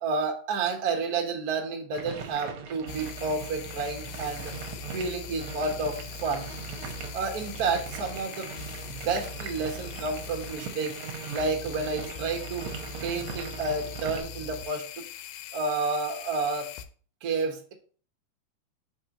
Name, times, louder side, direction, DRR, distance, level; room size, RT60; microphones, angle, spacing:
voice 1, 0.0-4.6 4.9-6.5 7.1-8.5 8.9-11.0 11.3-12.7 13.0-15.0 15.5-16.7 17.2-17.7, right 4 dB, 85° right, 3 dB, 0.8 m, -30 dB
sound 1, 1.9-14.2, right 6 dB, 70° right, 1.4 m, -41 dB
sound 2, 2.9-16.9, left 6 dB, 90° left, 2.0 m, -41 dB
4.4 x 4.4 x 5.1 m, 0.43 s
omnidirectional pair, 3.4 m